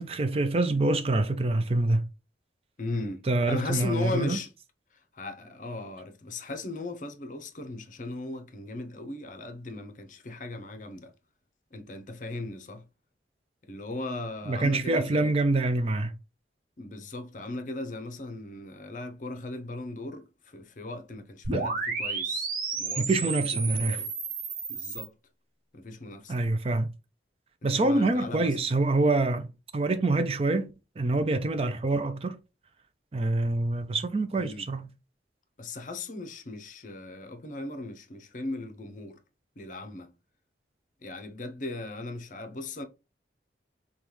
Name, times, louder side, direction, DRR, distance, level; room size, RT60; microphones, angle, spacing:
voice 1, 0.0-2.0 3.2-4.4 14.5-16.1 21.5-21.7 23.0-24.0 26.3-26.9 27.6-30.7 31.0-32.4 33.1-34.9, right 2 dB, 35° right, 0.4 m, -26 dB
voice 2, 2.8-3.2 3.5-4.5 5.1-11.1 11.7-12.8 13.7-15.3 16.8-22.5 22.8-24.1 24.7-25.1 25.7-26.3 27.6-28.5 34.4-34.7 35.6-39.2 39.6-40.1 41.0-42.8, left 2 dB, 45° left, 0.6 m, -37 dB
sound 1, 21.4-25.1, right 4 dB, 50° right, 1.0 m, -32 dB
5.2 x 2.3 x 3.0 m
head